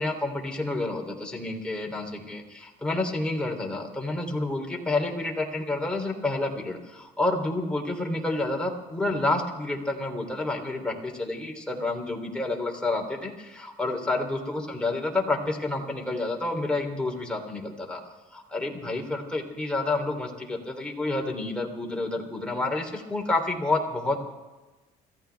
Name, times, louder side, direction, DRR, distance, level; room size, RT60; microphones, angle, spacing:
voice 1, 0.0-18.0 18.3-24.3, left 2 dB, 5° left, 0 dB, 3.3 m, -29 dB
28.0 x 14.5 x 3.5 m, 1.1 s
cardioid pair, 110°, 17 cm